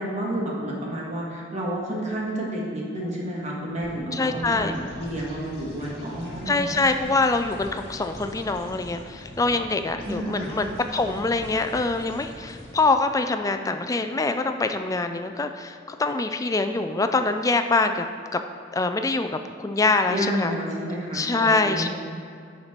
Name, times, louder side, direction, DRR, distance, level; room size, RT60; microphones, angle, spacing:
voice 1, 0.0-6.8 10.0-10.5 20.1-21.9, right 1 dB, 35° right, -3 dB, 1.5 m, -30 dB
sound 1, 3.7-13.2, equal, 55° left, 1.8 m, -42 dB
voice 2, 4.1-4.7 6.5-18.1 18.3-18.4 18.7-20.5 21.1-21.9, left 3 dB, 20° left, 7 dB, 0.3 m, -24 dB
10.0 x 4.5 x 4.2 m, 2.3 s
head